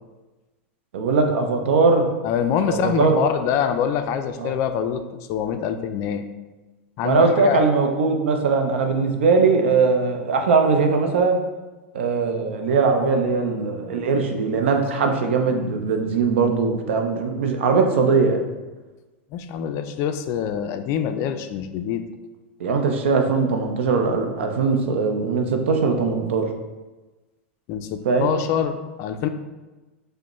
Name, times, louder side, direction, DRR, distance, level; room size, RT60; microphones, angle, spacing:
voice 1, 0.9-2.1 2.7-3.2 4.4-4.5 7.0-11.4 11.9-18.4 22.6-26.5 28.0-28.4, right 4 dB, 75° right, 4 dB, 0.5 m, -20 dB
voice 2, 2.2-5.0 5.3-6.2 7.0-7.6 19.3-22.0 27.7-29.3, left 8 dB, 50° left, 8 dB, 0.3 m, -25 dB
5.0 x 2.1 x 3.0 m, 1.2 s
hypercardioid pair, 100°, 6 cm